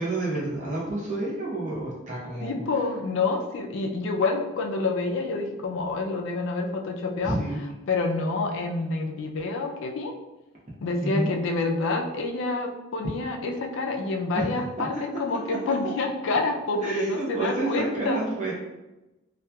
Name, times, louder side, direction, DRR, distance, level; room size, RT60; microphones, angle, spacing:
voice 1, 0.0-2.6 7.2-7.6 11.0-11.3 14.4-15.0 15.5-15.7 16.8-18.5, right 2 dB, 35° right, -5 dB, 0.7 m, -29 dB
voice 2, 2.4-7.4 7.9-10.2 10.8-18.2, left 3 dB, 65° left, 4 dB, 0.3 m, -28 dB
2.8 x 2.3 x 2.2 m, 0.99 s
head